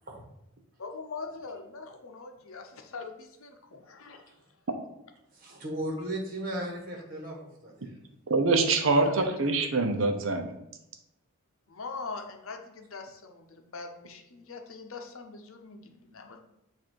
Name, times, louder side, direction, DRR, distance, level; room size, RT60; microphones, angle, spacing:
voice 1, 0.8-4.2 9.0-9.1 11.7-16.4, left 4 dB, 70° left, 4 dB, 0.8 m, -42 dB
voice 2, 5.3-7.9, right 1 dB, 40° right, -1 dB, 1.4 m, -36 dB
voice 3, 8.3-10.4, right 3 dB, 65° right, 5 dB, 0.8 m, -24 dB
7.5 x 2.7 x 4.5 m, 0.84 s
head